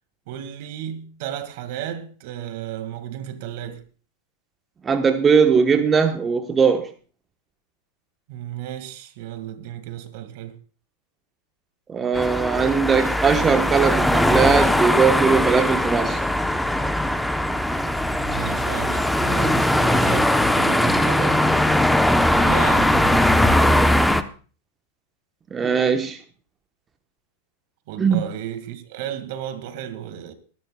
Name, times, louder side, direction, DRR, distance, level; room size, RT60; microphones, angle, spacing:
voice 1, 0.3-3.8 8.3-10.6 18.2-21.6 22.4-23.8 27.9-30.3, right 11 dB, 60° right, 1.9 m, -33 dB
voice 2, 4.8-6.9 11.9-16.2 25.5-26.2 28.0-28.2, right 6 dB, 20° right, 1.0 m, -19 dB
sound 1, 12.1-24.2, left 1 dB, 5° left, 0.8 m, -20 dB
23.5 x 11.5 x 2.3 m
hypercardioid pair, 125°, 0 cm